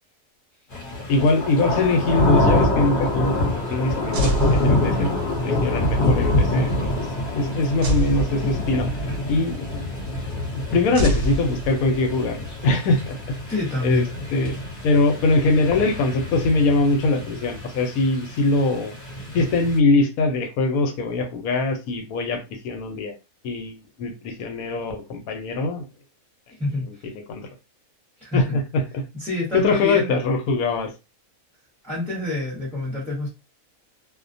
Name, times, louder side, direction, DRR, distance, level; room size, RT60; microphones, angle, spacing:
voice 1, 0.7-7.1 7.3-8.9 9.3-9.9 10.7-19.0 19.3-23.2 23.4-25.8 27.0-27.5 28.3-29.0 29.5-30.9, left 3 dB, 85° left, 6 dB, 1.1 m, -22 dB
sound 1, 0.7-19.8, left 1 dB, 45° left, 0.9 m, -26 dB
sound 2, 4.1-5.4 7.8-9.1 10.9-12.2, equal, 70° right, 0.9 m, -26 dB
voice 2, 13.5-14.1 26.6-26.9 28.2-28.6 29.1-30.1 31.8-33.3, left 2 dB, ahead, -6 dB, 0.7 m, -27 dB
2.4 x 2.1 x 2.6 m, 0.28 s
omnidirectional pair, 1.5 m